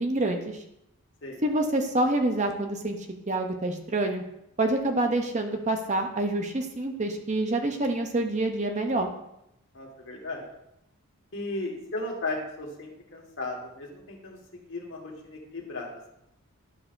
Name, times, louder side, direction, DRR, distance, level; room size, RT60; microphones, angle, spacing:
voice 1, 0.0-0.6 1.4-3.0 3.3-4.2 4.6-9.1, right 2 dB, 30° right, 4 dB, 0.7 m, -27 dB
voice 2, 9.7-10.4 11.3-16.1, left 2 dB, 55° left, -1 dB, 1.6 m, -36 dB
11.0 x 6.2 x 2.6 m, 0.81 s
head